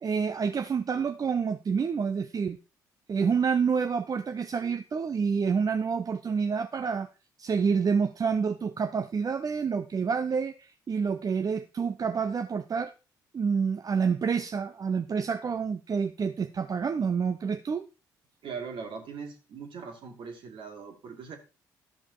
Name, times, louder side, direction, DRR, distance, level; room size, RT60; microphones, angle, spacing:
voice 1, 0.0-2.6 3.1-7.1 7.4-12.9 13.3-17.8, right 6 dB, 40° right, 8 dB, 0.7 m, -28 dB
voice 2, 18.4-21.4, right 5 dB, 60° right, 3 dB, 2.3 m, -40 dB
12.0 x 5.4 x 4.7 m, 0.32 s
hypercardioid pair, 45°, 10 cm